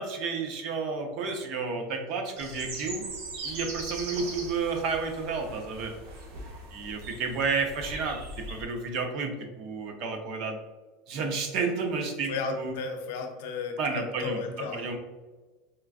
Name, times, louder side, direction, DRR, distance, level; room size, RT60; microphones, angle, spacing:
voice 1, 0.0-3.1 3.4-5.9 6.7-10.6 11.1-12.7 13.8-15.0, right 4 dB, 50° right, 4 dB, 0.6 m, -31 dB
sound 1, 2.4-8.6, right 2 dB, 75° right, 0.9 m, -40 dB
voice 2, 12.3-14.9, left 4 dB, 80° left, 5 dB, 0.6 m, -34 dB
4.4 x 2.4 x 2.4 m, 1.2 s
supercardioid pair, 155°, 0 cm